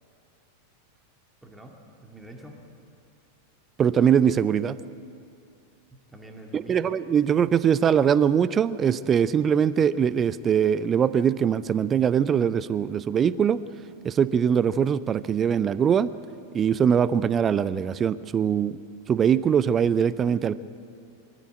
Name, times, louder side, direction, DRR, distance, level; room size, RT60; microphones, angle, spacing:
voice 1, 1.4-2.6 5.9-6.9, right 1 dB, 5° right, 1 dB, 2.1 m, -45 dB
voice 2, 3.8-4.8 6.5-13.6 14.0-16.1 16.5-18.8 19.1-20.6, right 8 dB, 25° right, 17 dB, 0.5 m, -22 dB
22.0 x 14.0 x 8.7 m, 2.6 s
figure-of-eight pair, 90°, 0 cm